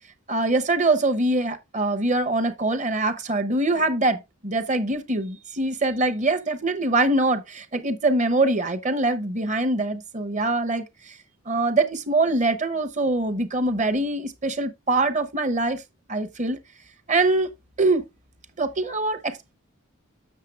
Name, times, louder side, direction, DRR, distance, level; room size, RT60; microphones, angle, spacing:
voice 1, 0.3-11.2 11.5-15.8 16.1-16.6 17.1-17.5 17.8-18.0 18.6-19.5, right 2 dB, 35° right, 0.9 m, -23 dB
7.4 x 6.6 x 3.2 m
head